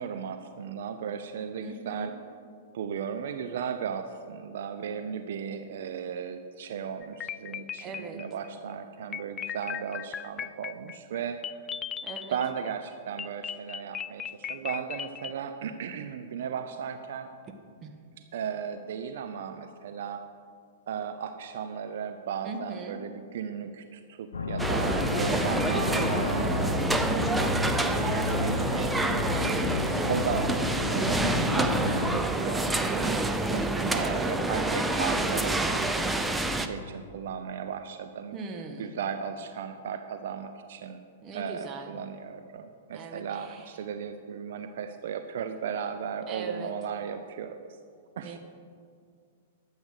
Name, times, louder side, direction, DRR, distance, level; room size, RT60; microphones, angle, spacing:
voice 1, 0.0-2.1 2.7-11.7 12.3-17.3 18.3-20.2 20.9-29.3 30.1-30.5 30.9-38.4 38.8-41.0 41.3-47.7 48.2-48.4, right 7 dB, 70° right, 8 dB, 0.7 m, -36 dB
voice 2, 1.6-2.1 7.8-8.2 12.0-12.4 17.8-17.9 22.4-23.0 26.3-26.8 29.3-30.1 33.9-34.3 38.3-39.0 41.2-41.9 42.9-43.7 46.3-46.7 48.2-48.4, right 4 dB, 30° right, 5 dB, 1.4 m, -40 dB
sound 1, 7.0-8.5 9.1-12.7 13.2-15.3, left 9 dB, 20° left, 0.3 m, -37 dB
sound 2, 24.3-32.2, left 4 dB, 90° left, 0.7 m, -32 dB
sound 3, 24.6-36.7, right 2 dB, 5° right, 0.7 m, -27 dB
12.0 x 8.1 x 6.5 m, 2.2 s
hypercardioid pair, 125°, 0 cm